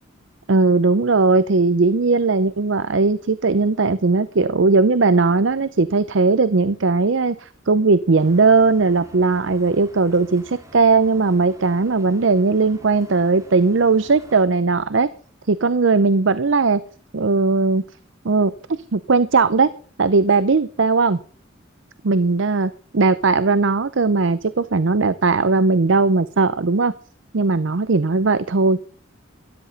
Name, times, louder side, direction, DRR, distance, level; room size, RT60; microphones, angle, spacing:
voice 1, 0.5-15.1 15.5-16.8 17.1-17.8 18.2-18.5 18.9-19.7 20.0-21.2 22.0-26.9 27.3-28.8, right 4 dB, 70° right, 15 dB, 0.6 m, -18 dB
sound 1, 8.2-14.5, right 1 dB, 15° right, 2.5 m, -46 dB
13.0 x 12.5 x 4.1 m, 0.43 s
head